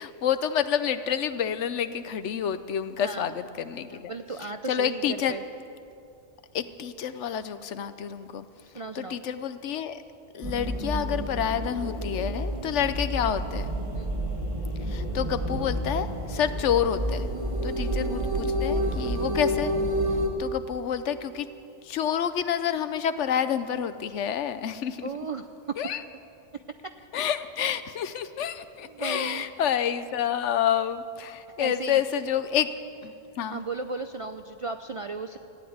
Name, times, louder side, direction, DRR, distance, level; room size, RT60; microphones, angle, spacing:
voice 1, 0.0-4.1 4.4-5.3 6.5-8.5 8.9-10.0 10.3-13.7 14.9-17.3 17.6-19.7 20.4-21.5 21.8-25.1 25.8-26.0 27.1-32.7 33.0-33.6, left 9 dB, 75° left, 12 dB, 1.0 m, -28 dB
voice 2, 3.0-3.3 3.9-5.4 8.7-9.2 12.6-12.8 13.9-14.2 25.0-25.8 26.8-26.9 28.8-29.5 31.6-32.0 33.5-35.4, right 4 dB, 55° right, 7 dB, 0.3 m, -36 dB
sound 1, 10.4-20.3, equal, 25° right, 1.7 m, -29 dB
14.5 x 10.0 x 9.4 m, 2.5 s
omnidirectional pair, 1.2 m